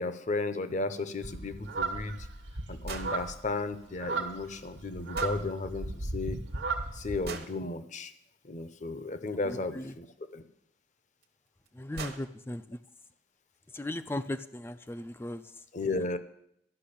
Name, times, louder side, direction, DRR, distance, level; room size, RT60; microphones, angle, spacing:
voice 1, 0.0-2.3 2.7-6.4 6.9-8.1 8.4-10.1 10.3-10.4 15.7-16.2, left 3 dB, 40° left, 12 dB, 0.7 m, -34 dB
sound 1, 1.2-7.4, right 3 dB, 75° right, 1.2 m, -36 dB
sound 2, 2.9-3.1 5.1-5.4 7.2-7.5 9.8-9.9 11.2-11.3 11.7-11.8 12.0-12.3, right 4 dB, 55° right, 1.0 m, -39 dB
voice 2, 9.4-10.0 11.7-12.8 13.7-15.6, left 1 dB, 10° left, 11 dB, 0.3 m, -37 dB
12.0 x 5.9 x 8.5 m, 0.75 s
head